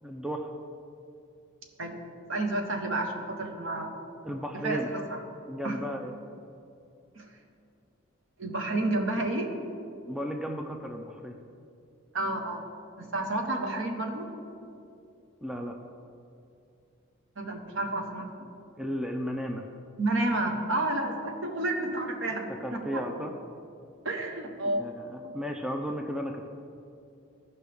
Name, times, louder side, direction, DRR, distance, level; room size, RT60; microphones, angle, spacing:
voice 1, 0.0-0.5 4.2-4.9 5.5-6.1 10.0-11.3 15.4-15.8 18.8-19.6 22.6-23.3 24.8-26.5, equal, 5° right, 3 dB, 0.4 m, -34 dB
voice 2, 2.3-3.9 4.6-5.2 5.6-5.8 7.2-7.3 8.4-9.5 12.1-12.6 13.0-14.3 17.4-18.5 20.0-23.0 24.0-24.9 25.2-25.3, right 2 dB, 65° right, 3 dB, 1.0 m, -30 dB
15.0 x 5.5 x 3.4 m, 2.6 s
head